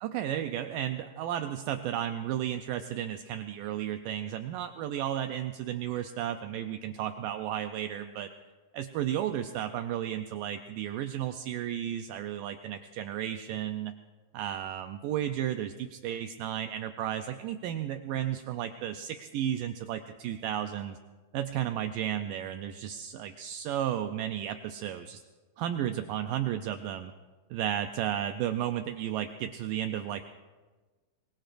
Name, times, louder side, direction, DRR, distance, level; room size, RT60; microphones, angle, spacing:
voice 1, 0.0-8.3 8.7-13.9 14.3-21.0 21.3-25.2 25.6-27.1 27.5-30.2, right 11 dB, 80° right, 7 dB, 2.0 m, -33 dB
25.0 x 21.5 x 2.6 m, 1.3 s
omnidirectional pair, 4.5 m